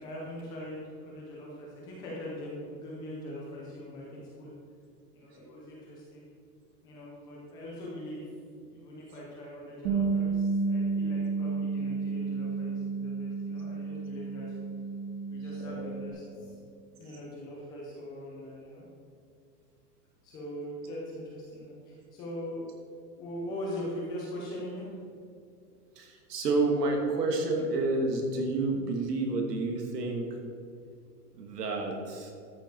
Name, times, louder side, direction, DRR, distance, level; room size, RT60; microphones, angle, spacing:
voice 1, 0.0-4.5 5.1-6.3 6.8-8.3 8.6-14.5 15.3-18.8 20.2-22.8 23.2-25.1, left 1 dB, 10° left, -5 dB, 0.6 m, -41 dB
Bass guitar, 9.8-16.1, right 4 dB, 30° right, 1.7 m, -31 dB
voice 2, 26.0-30.3 31.3-32.3, right 2 dB, 80° right, 2 dB, 2.6 m, -29 dB
13.0 x 7.0 x 4.7 m, 2.4 s
supercardioid pair, 170°, 47 cm